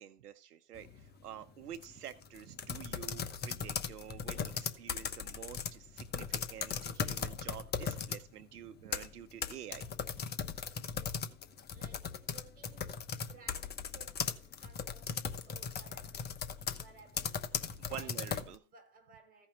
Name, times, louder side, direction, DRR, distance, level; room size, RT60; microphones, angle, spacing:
voice 1, 0.0-9.9 17.7-18.6, right 10 dB, 80° right, 1.0 m, -48 dB
sound 1, 0.7-1.1 1.7-8.2 8.7-18.5, left 6 dB, 20° left, 1.0 m, -38 dB
voice 2, 11.7-17.5 17.8-18.2 18.6-19.5, right 4 dB, 20° right, 7.5 m, -60 dB
15.5 x 5.7 x 5.5 m
hypercardioid pair, 115°, 45 cm